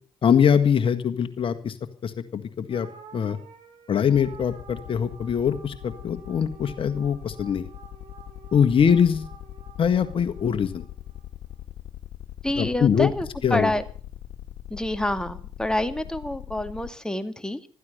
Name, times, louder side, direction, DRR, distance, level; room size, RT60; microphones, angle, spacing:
voice 1, 0.2-1.8 2.0-2.9 3.1-3.4 3.9-7.7 8.5-9.3 9.8-10.8 12.6-13.1 13.4-13.7, left 7 dB, 55° left, 9 dB, 1.7 m, -22 dB
sound 1, 2.7-11.3, right 6 dB, 60° right, 7.0 m, -50 dB
sound 2, 4.1-16.9, left 13 dB, 80° left, 1.7 m, -41 dB
voice 2, 12.4-13.9 14.7-17.7, left 1 dB, 5° left, 9 dB, 2.2 m, -27 dB
15.0 x 14.0 x 6.6 m, 0.42 s
supercardioid pair, 55°, 11 cm